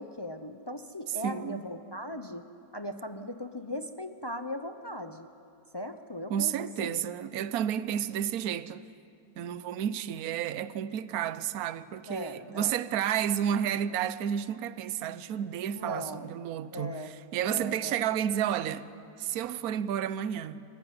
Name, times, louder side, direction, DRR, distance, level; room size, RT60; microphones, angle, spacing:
voice 1, 0.0-2.5 2.7-5.3 5.7-6.5 6.8-7.0 12.1-12.8 15.8-16.4 16.7-17.1 17.4-18.0, left 1 dB, 30° left, 0.4 m, -38 dB
voice 2, 1.2-1.7 6.3-8.8 9.4-18.8 19.2-20.6, right 9 dB, 65° right, 1.2 m, -31 dB
28.5 x 16.0 x 9.5 m
omnidirectional pair, 1.8 m